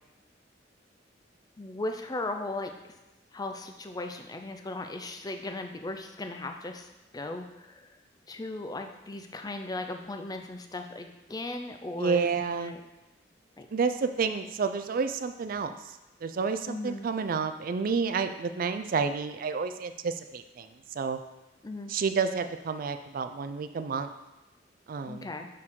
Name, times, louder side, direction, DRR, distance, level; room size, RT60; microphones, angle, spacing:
voice 1, 1.6-2.7 3.3-6.9 7.1-8.0 8.3-12.8 13.6-13.7 16.7-17.1 21.6-21.9 25.1-25.5, left 2 dB, 20° left, 5 dB, 0.4 m, -37 dB
voice 2, 12.0-12.7 13.7-21.2 21.9-24.1 24.9-25.3, right 5 dB, 50° right, 9 dB, 0.4 m, -30 dB
6.2 x 4.6 x 3.7 m, 1.1 s
head